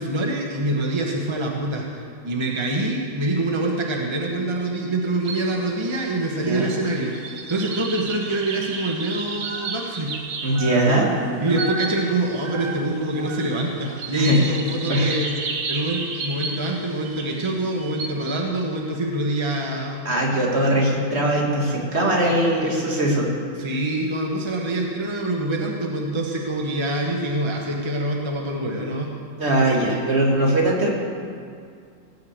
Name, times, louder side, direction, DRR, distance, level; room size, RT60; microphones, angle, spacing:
voice 1, 0.0-7.1 7.5-10.1 11.4-15.3 15.7-20.1 23.6-29.1, right 1 dB, 20° right, -1 dB, 0.9 m, -25 dB
sound 1, 5.2-5.6 5.9-18.4, right 4 dB, 60° right, 1.6 m, -33 dB
voice 2, 6.4-6.7 10.4-11.2 14.1-14.5 14.9-15.1 20.0-23.3 29.4-30.9, right 1 dB, 35° right, -2 dB, 2.2 m, -20 dB
18.0 x 6.5 x 8.1 m, 2.3 s
omnidirectional pair, 1.9 m